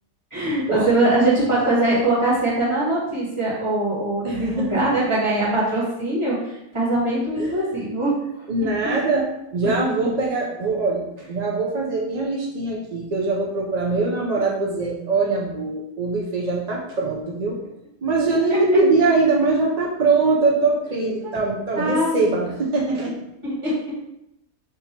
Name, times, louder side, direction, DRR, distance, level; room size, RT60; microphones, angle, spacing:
voice 1, 0.3-8.1 8.4-8.5 8.8-9.0 18.5-18.6 21.2-21.4 21.7-22.4 23.4-23.7, right 2 dB, 20° right, -7 dB, 1.5 m, -22 dB
voice 2, 4.2-4.9 7.4-7.6 8.5-9.3 9.5-17.6 18.0-23.2, right 3 dB, 65° right, -1 dB, 0.4 m, -22 dB
3.6 x 2.8 x 4.3 m, 0.84 s
omnidirectional pair, 1.5 m